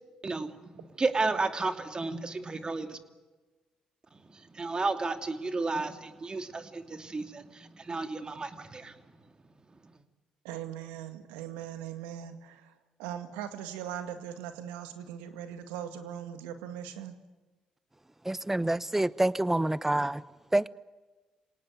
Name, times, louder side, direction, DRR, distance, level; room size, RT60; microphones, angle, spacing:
voice 1, 0.2-3.0 4.1-9.0 9.7-9.9, right 3 dB, 35° right, 2.8 m, -33 dB
voice 2, 10.4-12.7 13.0-17.2, right 10 dB, 85° right, 2.1 m, -40 dB
voice 3, 18.3-20.2 20.5-20.7, right 1 dB, 15° right, 1.0 m, -27 dB
27.0 x 18.5 x 9.4 m
hypercardioid pair, 50°, 3 cm